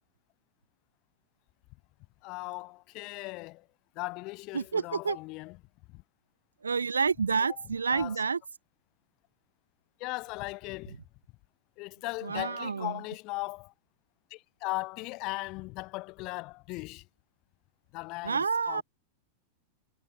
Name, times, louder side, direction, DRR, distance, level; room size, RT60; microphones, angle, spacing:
voice 1, 2.2-3.7 3.9-5.6 5.9-6.0 7.5-7.6 7.9-8.2 10.0-11.0 11.8-13.7 14.3-17.1 17.9-18.8, left 24 dB, 40° left, 2.4 m, -38 dB
voice 2, 4.5-5.2 6.6-8.4 12.2-13.0 18.2-18.8, right 5 dB, 75° right, 0.8 m, -29 dB
figure-of-eight pair, 90°, 0 cm